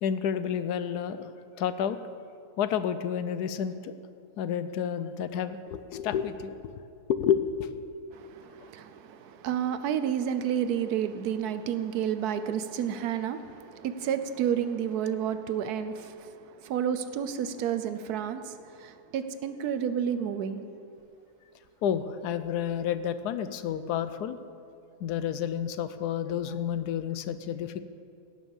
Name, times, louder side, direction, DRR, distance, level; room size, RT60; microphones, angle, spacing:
voice 1, 0.0-1.3 1.6-2.0 2.6-3.9 4.4-6.6 7.1-7.8 21.8-24.4 25.0-27.8, left 8 dB, 85° left, 1.2 m, -30 dB
voice 2, 8.1-20.7, right 9 dB, 75° right, 1.2 m, -31 dB
17.5 x 6.3 x 7.1 m
omnidirectional pair, 1.7 m